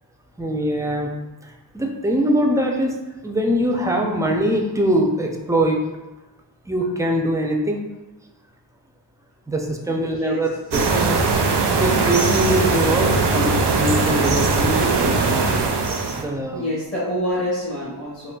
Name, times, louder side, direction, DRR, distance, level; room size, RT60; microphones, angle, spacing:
voice 1, 0.4-1.1 1.4-3.0 3.2-5.8 6.7-7.8 9.5-11.2 11.8-15.6 16.2-16.6, right 1 dB, 10° right, 1 dB, 0.3 m, -22 dB
voice 2, 9.9-10.4 16.5-18.3, left 1 dB, 30° left, -9 dB, 0.9 m, -27 dB
sound 1, 10.7-16.2, right 3 dB, 75° right, 0.5 m, -20 dB
3.8 x 2.2 x 2.3 m, 1.1 s
wide cardioid pair, 75°, 42 cm